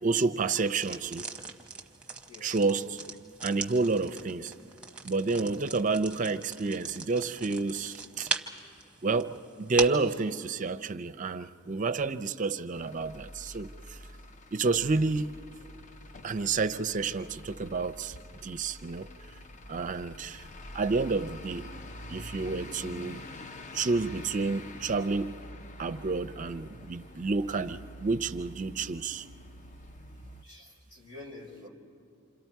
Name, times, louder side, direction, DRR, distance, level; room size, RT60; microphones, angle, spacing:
voice 1, 0.0-1.3 2.4-3.0 3.4-4.5 5.0-8.3 9.0-14.0 14.5-15.3 16.2-18.2 18.4-19.1 19.7-20.5 20.7-21.7 22.1-23.3 23.7-25.4 25.8-29.3, right 3 dB, 35° right, 11 dB, 0.5 m, -30 dB
sound 1, 0.7-10.1, right 4 dB, 5° right, 0.9 m, -40 dB
Truck / Idling, 12.7-30.4, left 1 dB, 35° left, 0.5 m, -46 dB
voice 2, 30.4-31.7, left 2 dB, 80° left, -1 dB, 4.4 m, -48 dB
27.5 x 27.5 x 4.6 m, 2.5 s
head